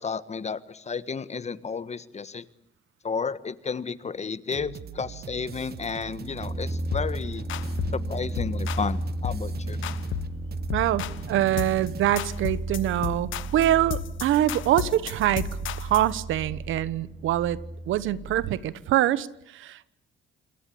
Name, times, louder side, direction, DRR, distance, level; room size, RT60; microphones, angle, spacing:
voice 1, 0.0-2.4 3.0-7.4 7.9-9.8, left 5 dB, 35° left, 1.4 m, -32 dB
sound 1, 4.5-12.2, right 9 dB, 50° right, 1.2 m, -41 dB
sound 2, 6.4-18.5, right 1 dB, 25° right, 2.4 m, -34 dB
sound 3, 6.9-7.1 7.5-8.0 8.4-8.9 9.2-9.5 9.8-10.4 10.7-11.2 11.6-11.9 12.2-16.1, left 14 dB, 80° left, 1.2 m, -34 dB
voice 2, 10.7-15.5 15.8-19.9, right 13 dB, 85° right, 1.2 m, -25 dB
28.0 x 21.5 x 8.6 m
cardioid pair, 90°, 20 cm